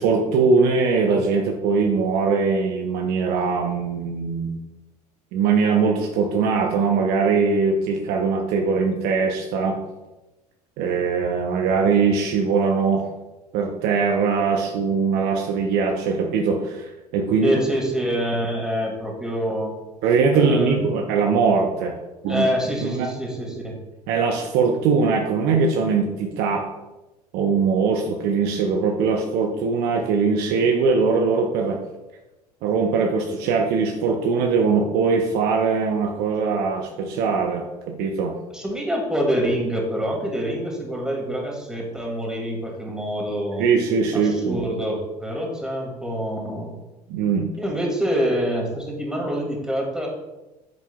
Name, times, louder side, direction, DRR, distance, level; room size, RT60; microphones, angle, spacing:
voice 1, 0.0-4.6 5.3-9.8 10.8-13.0 13.5-17.6 20.0-22.0 22.2-22.4 22.8-23.1 24.1-26.6 27.3-31.8 32.6-38.3 43.6-44.6 47.1-47.5, right 5 dB, 50° right, 2 dB, 0.9 m, -21 dB
voice 2, 17.4-19.7 20.3-20.8 22.3-23.8 38.5-43.6 44.1-46.7 47.6-50.1, equal, 5° right, -1 dB, 2.5 m, -26 dB
9.4 x 7.2 x 2.4 m, 1.0 s
figure-of-eight pair, 65°, 20 cm